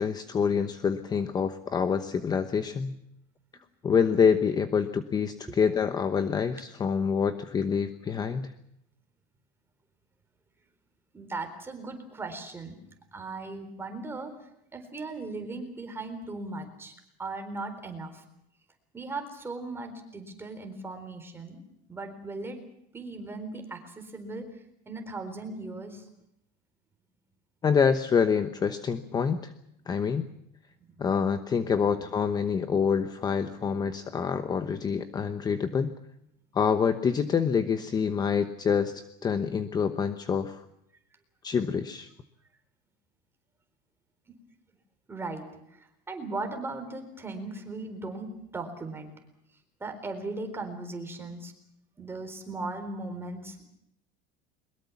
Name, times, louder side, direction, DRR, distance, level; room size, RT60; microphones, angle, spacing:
voice 1, 0.0-3.0 3.8-8.5 27.6-29.5 29.9-30.3 31.0-35.9 36.5-40.6 41.4-42.1, left 6 dB, 20° left, 10 dB, 1.0 m, -26 dB
voice 2, 11.1-12.8 13.1-14.3 14.7-16.9 17.2-18.2 18.9-21.6 21.9-22.6 22.9-24.5 24.9-26.1 30.8-31.1 31.9-32.1 32.6-32.7 44.3-44.4 45.1-49.1 49.8-51.5 52.0-53.6, right 3 dB, 10° right, 6 dB, 4.1 m, -38 dB
22.5 x 21.5 x 7.2 m, 0.78 s
cardioid pair, 160°, 19 cm